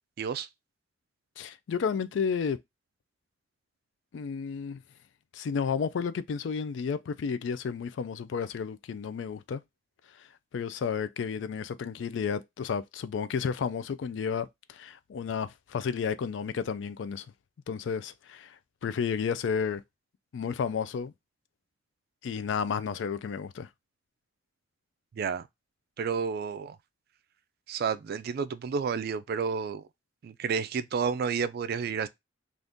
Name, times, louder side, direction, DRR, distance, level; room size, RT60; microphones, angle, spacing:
voice 1, 0.2-0.5 25.2-25.5 26.0-26.8 27.7-29.8 30.2-32.1, right 6 dB, 55° right, 0.3 m, -30 dB
voice 2, 1.4-2.6 4.1-4.8 5.3-9.6 10.5-17.3 17.7-18.6 18.8-19.8 20.3-21.1 22.2-23.7, left 6 dB, 75° left, 0.3 m, -32 dB
2.6 x 2.5 x 3.4 m
head